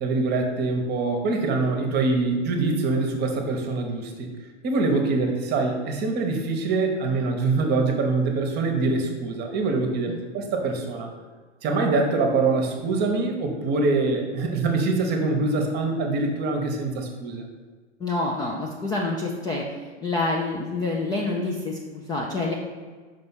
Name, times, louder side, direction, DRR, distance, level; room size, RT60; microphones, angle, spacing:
voice 1, 0.0-4.3 4.6-11.1 11.6-17.4, right 3 dB, 30° right, 4 dB, 1.0 m, -24 dB
voice 2, 18.0-19.6 20.0-22.5, left 2 dB, 10° left, -2 dB, 0.4 m, -27 dB
5.3 x 3.3 x 5.6 m, 1.4 s
hypercardioid pair, 120°, 35 cm